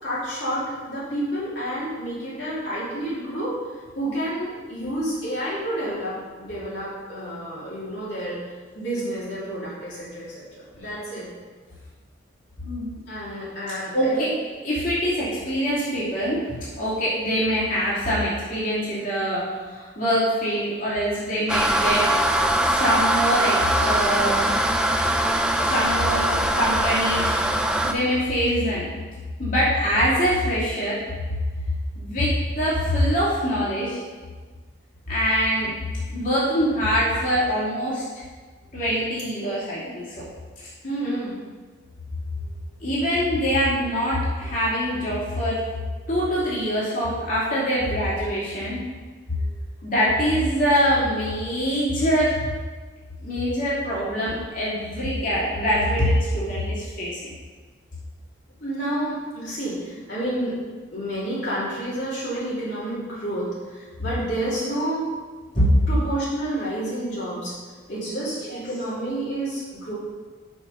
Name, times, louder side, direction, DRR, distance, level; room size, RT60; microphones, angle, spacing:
voice 1, 0.0-3.5 4.0-8.4 8.7-11.3 13.1-14.3 40.8-41.4 45.9-46.0 49.4-49.6 58.6-60.5 60.9-65.1 65.9-67.6 67.9-69.9, right 1 dB, 60° left, -9 dB, 2.7 m, -29 dB
voice 2, 12.6-13.0 13.9-14.3 14.6-22.0 22.6-24.5 25.6-27.4 27.8-28.8 29.4-31.0 32.0-32.3 32.6-34.0 35.1-35.7 36.1-38.0 38.7-40.1 40.6-40.7 42.8-45.6 46.1-48.8 49.8-52.4 53.2-57.2 65.5-65.8 68.5-68.6, equal, 40° left, -9 dB, 2.7 m, -24 dB
sound 1, 21.5-27.9, right 1 dB, 5° right, 0.3 m, -22 dB
6.4 x 6.3 x 5.6 m, 1.4 s
head